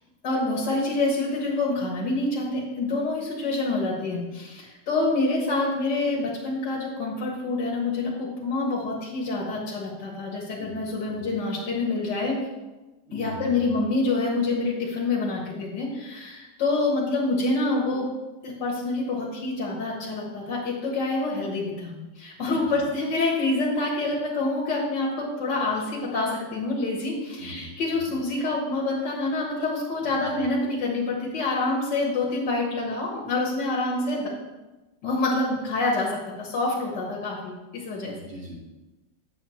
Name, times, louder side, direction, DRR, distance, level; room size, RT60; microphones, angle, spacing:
voice 1, 0.2-12.4 13.1-18.1 18.4-34.3 35.0-38.1, left 2 dB, 65° left, -4 dB, 2.0 m, -27 dB
voice 2, 13.1-13.7 22.5-22.8 27.4-28.2 30.0-30.4 38.1-38.6, equal, 35° right, -5 dB, 2.3 m, -41 dB
8.3 x 7.0 x 3.1 m, 1.1 s
omnidirectional pair, 2.0 m